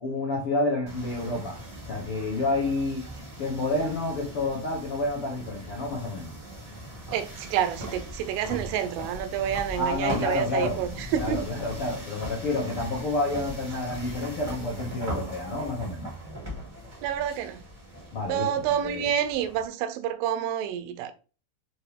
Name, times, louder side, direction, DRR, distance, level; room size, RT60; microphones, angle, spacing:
voice 1, 0.0-1.6 1.9-3.1 3.4-6.3 9.8-10.8 11.2-16.1 18.1-18.5 18.8-19.0, left 2 dB, 90° left, 1.2 m, -29 dB
sound 1, 0.9-19.7, right 1 dB, 10° right, 2.7 m, -39 dB
voice 2, 7.1-11.4 17.0-17.6 18.3-21.1, right 9 dB, 90° right, 3.5 m, -28 dB
7.3 x 4.9 x 3.5 m
omnidirectional pair, 5.5 m